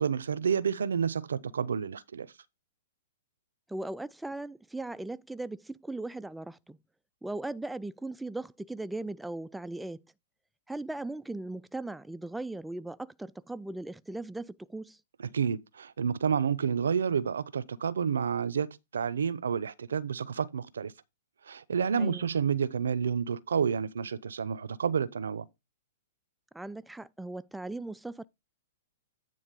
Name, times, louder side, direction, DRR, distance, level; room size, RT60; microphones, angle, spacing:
voice 1, 0.0-2.3 15.3-20.9 21.5-25.4, right 7 dB, 85° right, 0.6 m, -29 dB
voice 2, 3.7-6.8 7.2-10.0 10.7-15.0 22.0-22.3 26.5-28.2, right 2 dB, 5° right, 0.3 m, -38 dB
9.3 x 3.6 x 5.1 m
hypercardioid pair, 130°, 0 cm